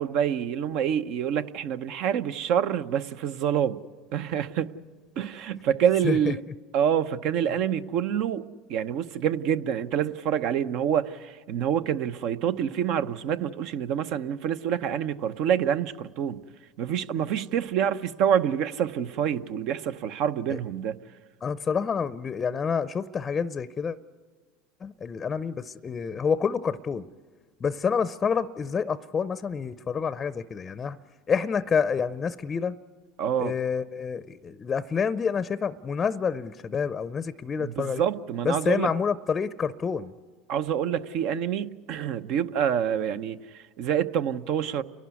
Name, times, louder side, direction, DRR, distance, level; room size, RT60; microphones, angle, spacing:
voice 1, 0.0-3.8 4.1-4.7 5.2-6.4 6.7-8.4 8.7-16.4 16.8-21.0 33.2-33.5 37.6-38.9 40.5-44.8, right 9 dB, 65° right, 0.8 m, -27 dB
voice 2, 6.0-6.3 20.5-20.6 21.4-24.0 24.8-27.0 27.6-31.0 31.3-32.8 33.4-38.0 38.4-40.1, left 6 dB, 30° left, 0.6 m, -28 dB
30.0 x 11.5 x 9.5 m
supercardioid pair, 95°, 0 cm